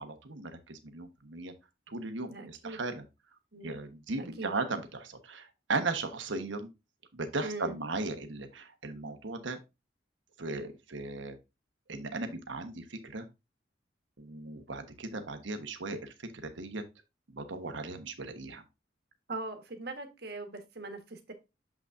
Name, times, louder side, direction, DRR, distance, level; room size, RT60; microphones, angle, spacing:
voice 1, 0.0-1.5 1.9-3.0 3.6-6.7 7.1-9.6 10.4-11.4 11.9-13.3 14.2-16.1 16.4-16.8 17.3-18.6, right 3 dB, 80° right, 1.2 m, -37 dB
voice 2, 2.3-2.8 3.5-3.7 4.2-4.5 7.4-7.8 19.3-21.3, right 2 dB, 55° right, 1.4 m, -40 dB
7.4 x 6.0 x 2.6 m
head